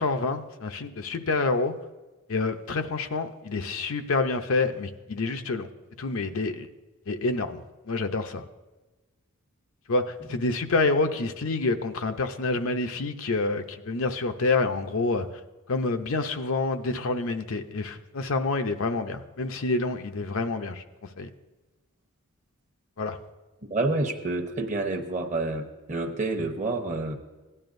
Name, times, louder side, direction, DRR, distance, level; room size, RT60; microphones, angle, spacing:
voice 1, 0.0-1.7 2.3-5.7 6.0-6.7 7.1-7.6 7.9-8.4 9.9-15.3 15.7-20.8 21.2-21.3 23.0-23.2, left 3 dB, 65° left, 7 dB, 0.6 m, -27 dB
voice 2, 23.7-27.2, right 2 dB, 35° right, 3 dB, 1.0 m, -28 dB
17.0 x 11.0 x 2.6 m, 1.2 s
head